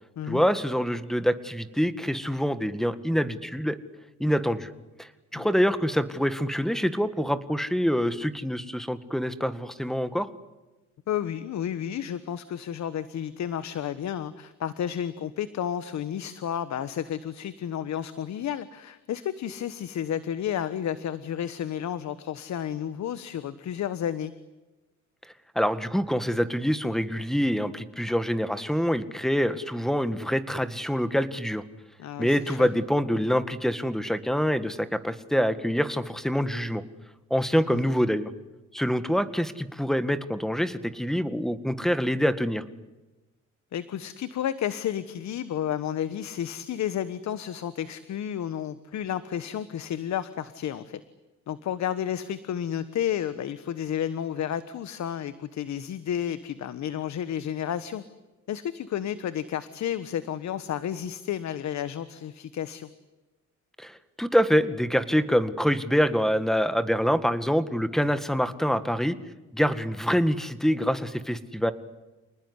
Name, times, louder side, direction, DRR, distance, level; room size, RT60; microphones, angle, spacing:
voice 1, 0.3-3.8 4.2-4.7 5.0-10.3 25.6-31.6 32.2-36.8 37.3-38.3 38.7-42.6 63.8-69.2 69.5-71.7, equal, ahead, 12 dB, 1.9 m, -25 dB
voice 2, 11.1-24.3 32.0-32.7 37.7-37.8 43.7-51.0 51.5-58.0 58.5-62.9, left 10 dB, 65° left, 14 dB, 1.3 m, -31 dB
28.5 x 19.5 x 9.8 m, 1.1 s
cardioid pair, 90°, 30 cm